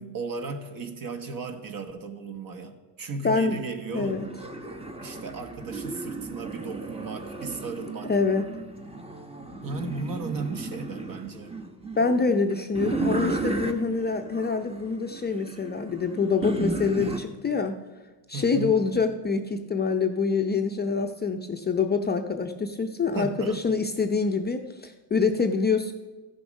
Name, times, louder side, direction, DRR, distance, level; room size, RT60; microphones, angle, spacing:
voice 1, 0.0-4.2 5.0-8.1 9.6-11.6 18.3-18.8 23.1-23.8, right 3 dB, 50° right, 6 dB, 1.4 m, -35 dB
voice 2, 3.2-3.6 3.9-4.3 8.0-8.5 12.0-17.8 18.3-25.9, left 4 dB, 20° left, 5 dB, 0.5 m, -26 dB
sound 1, 3.9-17.2, right 2 dB, 15° right, 0.9 m, -34 dB
14.0 x 6.9 x 5.3 m, 1.2 s
cardioid pair, 115°, 45 cm